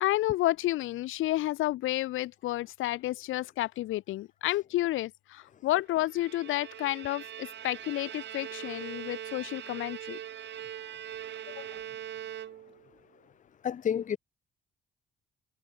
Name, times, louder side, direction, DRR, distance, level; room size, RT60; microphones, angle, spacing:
voice 1, 0.0-10.2 11.5-11.8, left 16 dB, 85° left, 1.0 m, -31 dB
Bowed string instrument, 5.9-12.9, right 11 dB, 65° right, 1.3 m, -42 dB
voice 2, 13.6-14.2, left 8 dB, 40° left, 0.7 m, -29 dB
cardioid pair, 90°, 20 cm